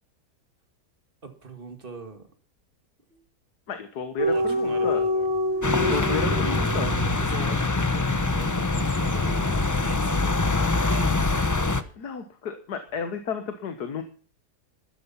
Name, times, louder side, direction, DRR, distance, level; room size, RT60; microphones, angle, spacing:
voice 1, 1.2-2.3 3.1-3.3 4.2-5.3 5.7-6.6 7.1-9.5 9.8-10.5 10.8-11.5, right 3 dB, 35° right, 7 dB, 2.3 m, -41 dB
voice 2, 3.7-5.0 5.9-6.9 12.0-14.0, left 6 dB, 75° left, 8 dB, 1.8 m, -32 dB
sound 1, 4.2-10.9 11.2-11.5, left 1 dB, 15° right, 3.3 m, -29 dB
sound 2, 5.6-11.8, left 3 dB, 20° left, 0.4 m, -24 dB
13.0 x 12.0 x 5.7 m, 0.42 s
omnidirectional pair, 1.7 m